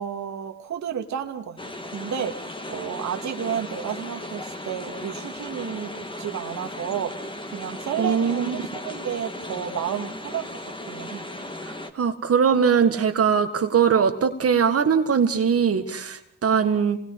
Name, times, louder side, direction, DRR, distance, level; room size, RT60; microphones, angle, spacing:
voice 1, 0.0-1.6 1.9-11.3, right 8 dB, 70° right, 5 dB, 2.2 m, -32 dB
sound 1, 1.6-11.9, left 1 dB, 15° left, 2.7 m, -36 dB
voice 2, 8.0-8.6 11.6-17.0, right 6 dB, 50° right, 6 dB, 1.9 m, -21 dB
26.5 x 21.0 x 4.9 m, 0.63 s
supercardioid pair, 60°, 30 cm